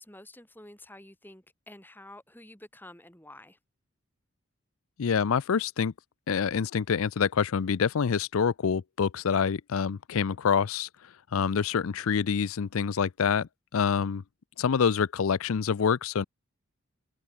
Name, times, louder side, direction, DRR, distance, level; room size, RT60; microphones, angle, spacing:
voice 1, 0.0-3.6, left 1 dB, 10° left, 3.5 m, -49 dB
voice 2, 5.0-5.9 6.3-10.9 11.3-14.2 14.6-16.2, left 6 dB, 70° left, 0.5 m, -26 dB
head